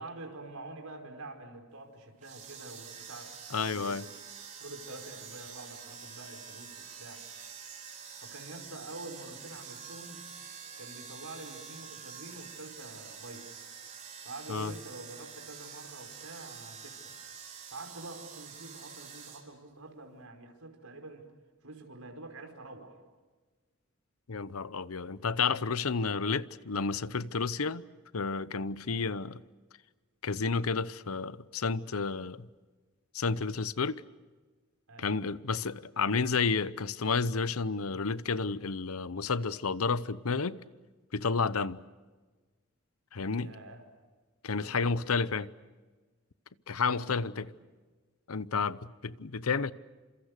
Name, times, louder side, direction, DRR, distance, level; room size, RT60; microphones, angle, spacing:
voice 1, 0.0-3.3 3.6-4.0 4.6-7.2 8.2-10.3 10.8-13.5 14.2-17.1 17.7-21.3 21.6-23.0 28.9-29.2 34.9-35.2 43.4-43.8 44.6-45.2 46.7-47.3 47.6-47.7, right 2 dB, 90° right, 5.2 m, -47 dB
sound 1, 2.2-19.4, right 7 dB, 35° right, 4.4 m, -47 dB
voice 2, 3.5-4.0 14.5-14.7 24.3-27.8 28.1-29.4 30.2-32.5 33.1-34.0 35.0-40.6 41.1-41.8 43.1-43.5 44.4-45.5 46.7-47.5 48.3-49.7, left 4 dB, 85° left, 0.8 m, -31 dB
29.5 x 26.5 x 6.7 m
head